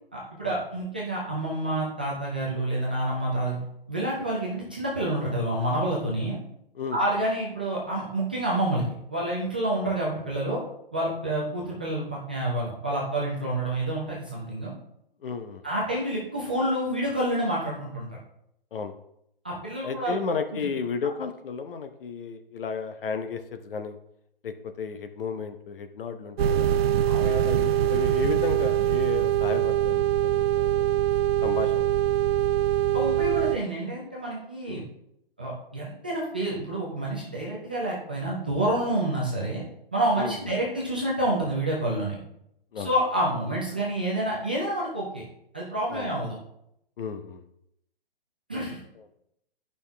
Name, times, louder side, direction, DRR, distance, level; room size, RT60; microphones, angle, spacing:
voice 1, 0.1-3.6 3.9-6.4 6.9-10.6 10.9-14.7 15.6-18.1 19.4-20.2 20.5-20.6 21.0-21.1 27.1-27.3 32.9-34.8 35.4-39.6 39.9-42.2 42.8-45.2 45.5-46.4 48.5-48.8, right 1 dB, 10° right, -6 dB, 0.3 m, -28 dB
voice 2, 15.2-15.6 18.7-18.9 19.8-24.0 24.4-26.7 27.2-30.0 30.3-30.8 31.4-31.9 34.7-34.8 40.2-40.4 42.7-42.9 45.9-46.1 47.0-47.4 49.0-49.1, left 5 dB, 65° left, 8 dB, 1.0 m, -33 dB
sound 1, 26.4-33.6, right 11 dB, 85° right, 0.5 m, -23 dB
10.5 x 5.4 x 3.4 m, 0.78 s
hypercardioid pair, 155°, 30 cm